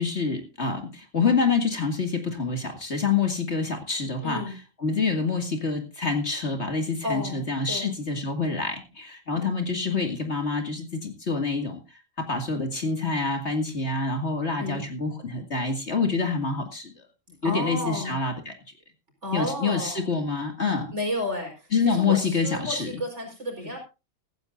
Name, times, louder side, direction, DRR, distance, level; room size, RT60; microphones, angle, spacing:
voice 1, 0.0-4.5 4.8-16.9 17.4-18.5 19.3-20.9 21.7-23.0 23.6-23.7, left 4 dB, 55° left, 5 dB, 2.6 m, -27 dB
voice 2, 4.2-4.6 7.0-7.4 7.7-7.9 9.3-9.5 14.6-14.9 17.4-18.2 19.2-20.0 20.9-23.8, left 1 dB, 55° right, 2 dB, 5.1 m, -32 dB
16.5 x 15.0 x 2.6 m, 0.29 s
omnidirectional pair, 1.4 m